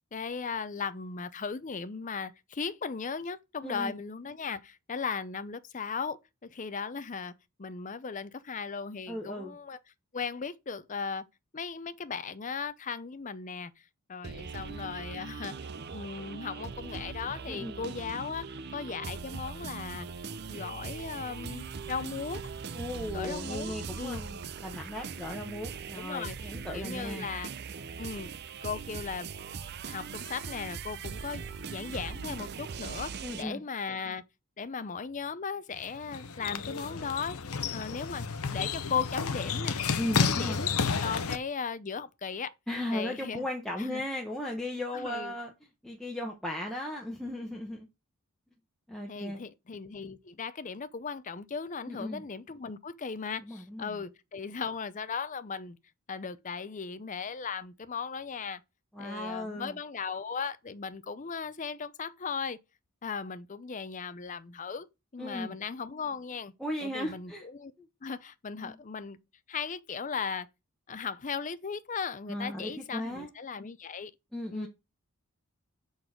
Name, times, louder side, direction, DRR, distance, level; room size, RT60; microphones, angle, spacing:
voice 1, 0.1-7.3 7.6-9.8 10.1-11.2 11.5-13.7 14.1-15.5 15.9-20.1 20.5-22.5 23.1-24.2 25.9-27.5 28.0-28.3 28.6-29.3 29.9-34.2 34.6-37.4 37.7-39.8 40.2-40.7 41.0-42.5 42.9-43.5 43.8-44.1 44.9-45.4 49.1-55.8 56.1-58.6 59.0-62.6 63.0-64.9 65.1-66.5 66.8-67.7 68.0-69.2 69.5-70.5 70.9-74.1 74.5-74.7, left 5 dB, 35° left, 0.6 m, -37 dB
voice 2, 3.6-4.0 9.1-9.6 17.5-17.8 22.7-27.3 33.2-33.6 39.9-40.6 42.7-45.5 45.8-47.9 48.9-49.4 51.9-52.2 53.5-54.0 58.9-59.7 65.2-65.6 66.6-67.4 68.6-68.8 72.3-73.3 74.3-74.7, left 1 dB, ahead, 1.0 m, -36 dB
sound 1, 14.2-33.4, right 5 dB, 45° right, 0.5 m, -40 dB
sound 2, 35.7-41.4, left 5 dB, 75° left, 0.8 m, -31 dB
6.9 x 4.0 x 6.0 m
head